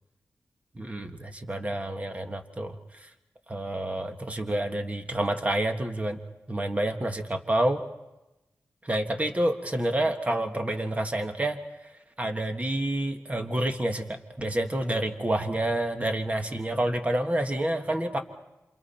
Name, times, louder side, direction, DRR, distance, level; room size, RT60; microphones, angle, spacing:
voice 1, 0.7-2.8 3.0-3.1 3.5-6.2 6.5-7.8 8.8-11.6 12.2-18.2, right 1 dB, 25° right, 5 dB, 1.6 m, -28 dB
28.0 x 27.0 x 4.4 m, 1.0 s
wide cardioid pair, 90°, 5 cm